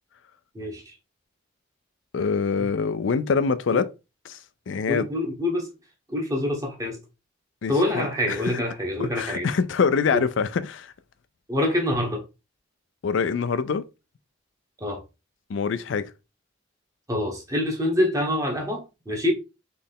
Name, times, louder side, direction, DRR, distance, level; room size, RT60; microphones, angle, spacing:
voice 1, 2.1-3.9 4.3-4.4 4.7-5.1 7.6-8.6 9.0-10.9 13.0-13.9 15.5-16.1, left 5 dB, 70° left, 0.4 m, -25 dB
voice 2, 4.9-5.7 6.1-7.0 7.7-9.5 10.1-10.2 11.5-12.2 14.8-15.0 17.1-19.3, left 1 dB, 15° right, 1.1 m, -26 dB
4.2 x 3.2 x 3.6 m
head